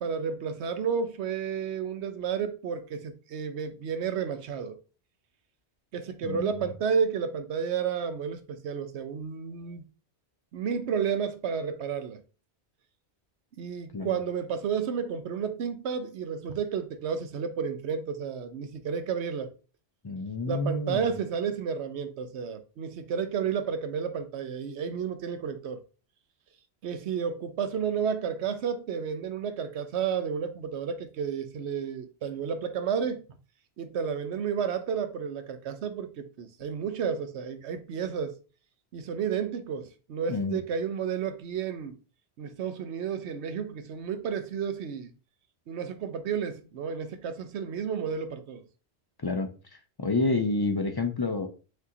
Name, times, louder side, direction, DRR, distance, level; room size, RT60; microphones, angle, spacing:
voice 1, 0.0-4.8 5.9-9.8 10.5-12.2 13.6-19.5 20.5-25.8 26.8-33.2 33.8-38.4 38.9-42.0 42.4-45.1 45.7-48.6, right 7 dB, 75° right, 1.0 m, -31 dB
voice 2, 20.0-21.0 40.3-40.6 49.2-51.5, left 3 dB, 40° left, 0.3 m, -29 dB
6.0 x 2.8 x 2.7 m
omnidirectional pair, 1.1 m